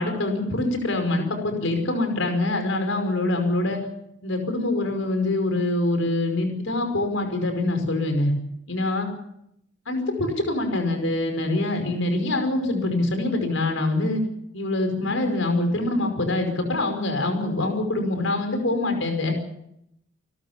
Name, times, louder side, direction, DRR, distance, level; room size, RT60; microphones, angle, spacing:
voice 1, 0.0-3.8 4.2-8.3 8.7-9.1 9.9-14.2 14.5-19.3, left 2 dB, 75° left, 5 dB, 5.3 m, -24 dB
29.0 x 13.0 x 7.2 m, 0.76 s
head